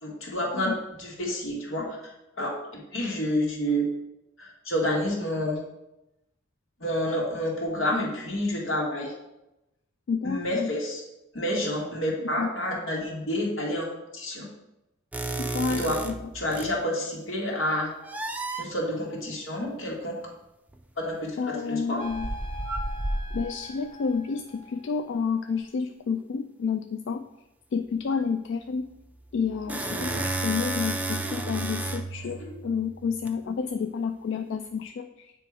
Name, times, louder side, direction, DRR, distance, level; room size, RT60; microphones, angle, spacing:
voice 1, 0.0-2.0 2.4-3.9 4.4-5.6 6.8-9.1 10.2-11.0 11.3-13.9 14.1-14.5 15.7-16.0 16.3-17.9 18.6-20.2 21.0-22.0 29.9-30.2 31.2-31.3 32.2-32.6, left 1 dB, 85° left, -2 dB, 2.0 m, -29 dB
voice 2, 10.1-10.7 12.4-12.5 15.4-16.1 21.4-22.3 23.3-27.2 27.7-28.9 29.3-35.3, left 5 dB, 65° left, 8 dB, 0.3 m, -30 dB
sound 1, 15.1-16.8 18.0-18.7 20.7-20.8 22.1-23.7 29.2-33.3, right 2 dB, 10° right, 0.4 m, -32 dB
sound 2, 22.0-25.2, equal, 30° left, 0.8 m, -43 dB
8.3 x 3.4 x 4.7 m, 0.91 s
head